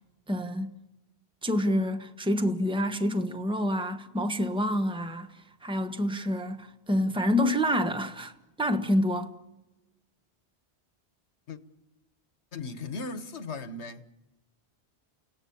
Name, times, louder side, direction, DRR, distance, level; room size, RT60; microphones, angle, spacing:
voice 1, 0.3-0.7 1.4-5.3 5.6-8.3 8.6-9.3, equal, 5° right, 1.2 m, -27 dB
voice 2, 12.5-14.0, left 3 dB, 85° left, 1.6 m, -37 dB
29.5 x 18.0 x 8.6 m
omnidirectional pair, 1.1 m